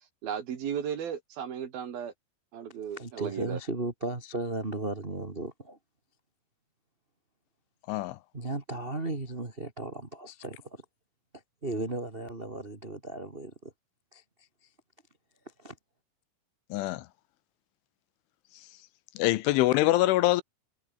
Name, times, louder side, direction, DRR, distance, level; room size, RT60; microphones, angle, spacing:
voice 1, 0.2-2.1 2.5-3.6, right 8 dB, 55° right, 3.5 m, -35 dB
voice 2, 2.9-5.8 8.3-10.8 11.6-13.7 14.1-14.2 15.6-15.7, right 2 dB, 30° right, 1.0 m, -35 dB
voice 3, 7.9-8.2 16.7-17.1 19.2-20.4, left 17 dB, 80° left, 3.2 m, -24 dB
omnidirectional pair, 5.8 m